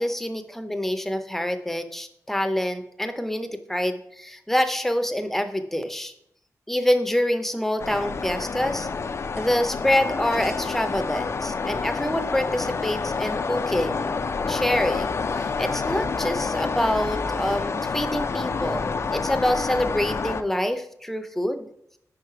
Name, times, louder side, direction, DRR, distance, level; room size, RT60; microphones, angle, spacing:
voice 1, 0.0-6.1 6.7-8.9 9.4-14.2 14.5-21.7, left 1 dB, 5° left, 8 dB, 0.6 m, -26 dB
sound 1, 7.8-20.4, left 4 dB, 50° left, 0.4 m, -28 dB
5.2 x 4.7 x 4.8 m, 0.72 s
cardioid pair, 75°, 6 cm